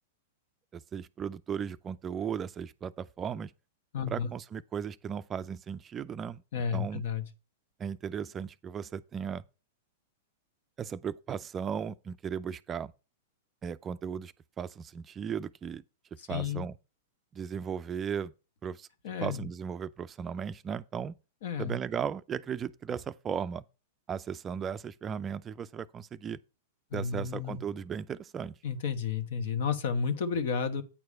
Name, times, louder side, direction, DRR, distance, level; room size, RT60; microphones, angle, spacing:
voice 1, 0.7-3.5 4.1-6.4 6.7-7.0 7.8-9.4 10.8-12.9 13.6-15.8 16.3-16.7 17.3-18.3 18.6-18.9 19.2-21.1 21.6-23.6 24.1-26.4 26.9-28.5, right 7 dB, 25° right, 0.4 m, -36 dB
voice 2, 3.9-4.3 6.5-7.2 16.2-16.6 19.0-19.5 21.4-21.8 26.9-27.6 28.6-30.8, left 6 dB, 65° left, 1.2 m, -32 dB
8.8 x 4.7 x 5.4 m
hypercardioid pair, 105°, 0 cm